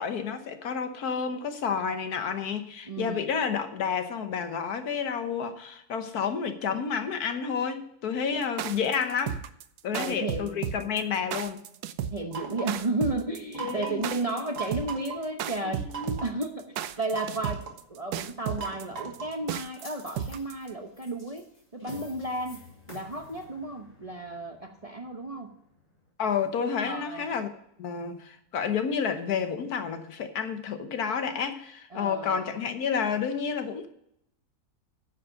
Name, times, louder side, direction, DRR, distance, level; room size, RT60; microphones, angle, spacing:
voice 1, 0.0-9.4 9.8-11.6 13.6-14.4 15.6-16.2 26.2-27.5 27.8-33.9, left 6 dB, 75° left, 8 dB, 1.6 m, -30 dB
voice 2, 2.9-3.3 8.3-8.4 9.9-10.6 12.1-15.8 16.2-17.6 17.9-21.5 21.7-25.5 26.8-27.3 31.9-32.5, right 2 dB, 30° right, 3 dB, 0.9 m, -33 dB
sound 1, 8.4-20.7, right 9 dB, 90° right, 1.2 m, -34 dB
sound 2, 12.3-12.8 13.5-14.1 14.6-15.2 15.9-16.4 17.1-17.8 18.6-19.4, right 6 dB, 55° right, 1.9 m, -38 dB
sound 3, 19.8-26.1, left 2 dB, 30° left, 4.3 m, -50 dB
10.0 x 7.5 x 6.4 m, 0.73 s
omnidirectional pair, 1.6 m